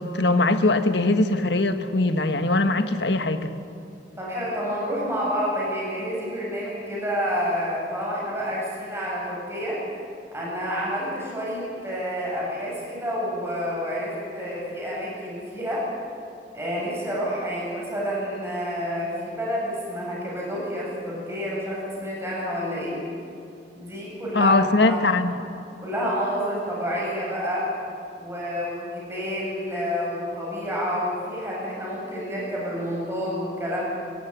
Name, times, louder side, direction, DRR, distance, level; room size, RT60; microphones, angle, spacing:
voice 1, 0.0-3.5 24.3-25.3, left 2 dB, 80° left, 8 dB, 1.5 m, -21 dB
voice 2, 4.2-9.8 10.3-15.9 16.5-23.0 23.7-24.5 24.8-25.2 25.8-27.7 28.2-33.8, equal, 15° right, -5 dB, 7.9 m, -29 dB
28.0 x 14.0 x 9.9 m, 2.7 s
head